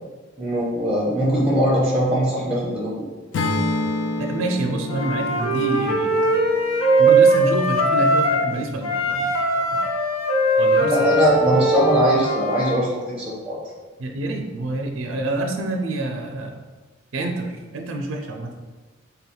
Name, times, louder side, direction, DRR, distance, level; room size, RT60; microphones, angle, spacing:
voice 1, 0.4-3.0 10.9-13.6, equal, 5° right, -6 dB, 0.6 m, -21 dB
Acoustic guitar / Strum, 3.3-7.6, left 2 dB, 60° left, 0.4 m, -28 dB
voice 2, 4.2-6.4 7.0-9.8 10.6-11.1 11.5-11.6 14.0-16.6 17.1-18.5, right 2 dB, 75° right, 3 dB, 0.5 m, -27 dB
Wind instrument woodwind instrument, 4.9-8.5 8.8-12.8, right 2 dB, 85° left, 0.8 m, -20 dB
3.4 x 2.3 x 4.2 m, 1.3 s
head